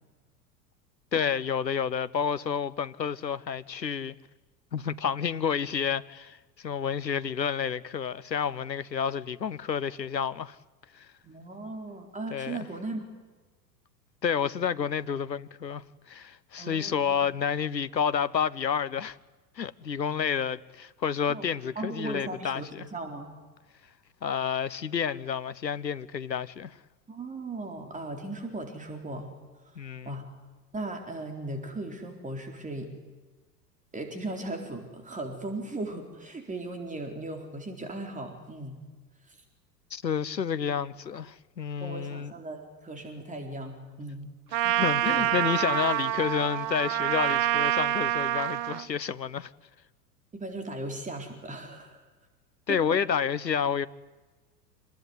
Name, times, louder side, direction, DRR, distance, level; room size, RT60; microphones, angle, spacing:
voice 1, 1.1-4.2 4.7-10.6 10.9-11.1 12.3-12.6 14.2-19.2 19.6-22.9 24.2-26.8 29.8-30.2 39.9-42.3 44.6-49.5 52.7-53.9, left 7 dB, 85° left, 1.0 m, -30 dB
voice 2, 11.2-13.1 16.6-17.2 21.3-21.5 21.8-23.3 27.1-29.3 29.6-29.7 30.0-30.2 30.7-32.9 33.9-38.8 39.3-39.4 41.8-44.3 45.0-45.3 50.3-52.0 52.7-53.0, right 2 dB, 15° right, 4.1 m, -37 dB
Trumpet, 44.5-48.8, right 14 dB, 40° right, 1.1 m, -27 dB
27.5 x 20.5 x 9.5 m
figure-of-eight pair, 85°, 49 cm